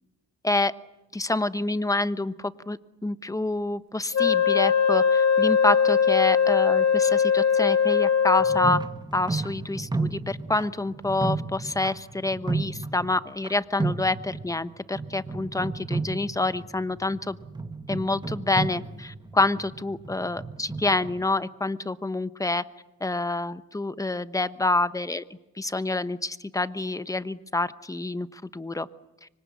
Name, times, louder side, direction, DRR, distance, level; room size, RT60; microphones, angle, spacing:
voice 1, 1.1-8.8 9.1-17.4 17.9-22.6 23.0-25.2 25.6-28.9, left 2 dB, 10° left, 13 dB, 1.0 m, -27 dB
Wind instrument woodwind instrument, 4.1-8.9, left 7 dB, 60° left, 1.5 m, -21 dB
sound 1, 8.4-13.5 13.8-14.7 15.0-21.2, right 3 dB, 15° right, 1.3 m, -33 dB
25.0 x 24.5 x 8.5 m, 1.0 s
cardioid pair, 90°, 30 cm